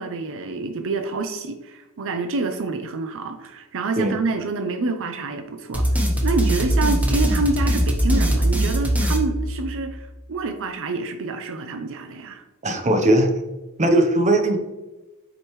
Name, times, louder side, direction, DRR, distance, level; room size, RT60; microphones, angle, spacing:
voice 1, 0.0-12.4, right 3 dB, 65° right, 7 dB, 0.6 m, -27 dB
sound 1, 5.7-10.0, right 1 dB, 5° right, 1.0 m, -21 dB
voice 2, 12.6-13.3 13.8-14.6, right 1 dB, 30° right, 5 dB, 0.8 m, -18 dB
7.4 x 5.2 x 3.1 m, 1.1 s
head